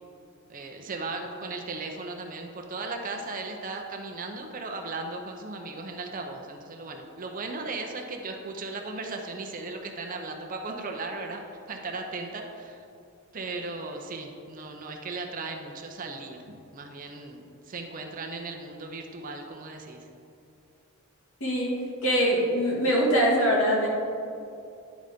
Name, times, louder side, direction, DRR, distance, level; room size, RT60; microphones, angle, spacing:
voice 1, 0.5-11.4 11.7-12.8 13.3-20.0, right 3 dB, 40° right, 3 dB, 0.6 m, -37 dB
voice 2, 21.4-21.7 22.0-23.9, equal, 70° left, -4 dB, 1.9 m, -23 dB
10.0 x 4.1 x 5.0 m, 2.5 s
head